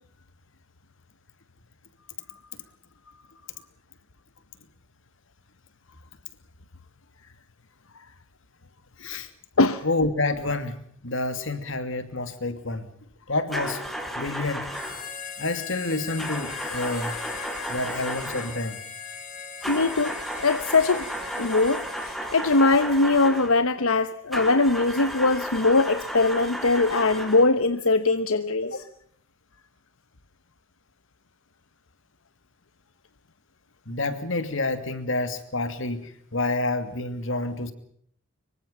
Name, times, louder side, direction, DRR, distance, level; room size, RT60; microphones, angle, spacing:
voice 1, 9.0-9.3 9.8-12.9 13.3-13.9 14.1-14.7 15.4-17.1 17.7-18.8 28.6-28.7 33.9-37.7, left 2 dB, 65° left, 10 dB, 2.7 m, -28 dB
sound 1, 13.5-15.1 16.2-18.6 19.6-23.6 24.3-27.5, equal, ahead, 3.7 m, -34 dB
Harmonica, 14.7-22.7, left 7 dB, 40° left, 4.0 m, -39 dB
voice 2, 19.7-21.1 21.4-28.8, left 3 dB, 80° left, 12 dB, 1.1 m, -21 dB
25.5 x 24.0 x 5.7 m, 0.62 s
head